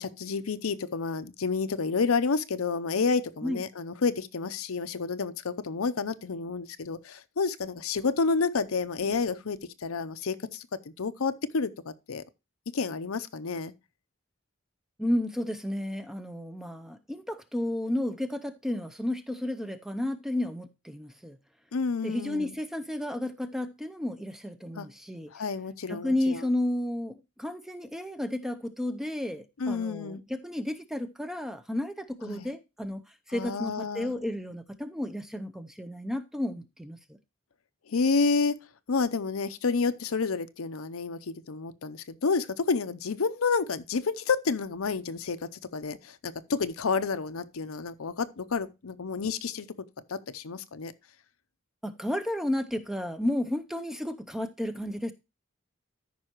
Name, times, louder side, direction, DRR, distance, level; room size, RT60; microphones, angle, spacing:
voice 1, 0.0-10.7 11.0-12.2 12.7-13.7 21.7-22.5 24.7-24.9 25.3-26.4 29.6-30.2 32.2-32.5 33.3-34.1 37.9-38.6 38.9-49.7 50.1-50.9, left 4 dB, 85° left, 0.7 m, -30 dB
voice 2, 15.0-21.4 22.0-25.3 25.9-33.0 33.3-37.2 51.8-55.1, left 1 dB, ahead, 0.5 m, -32 dB
13.5 x 5.5 x 3.0 m
head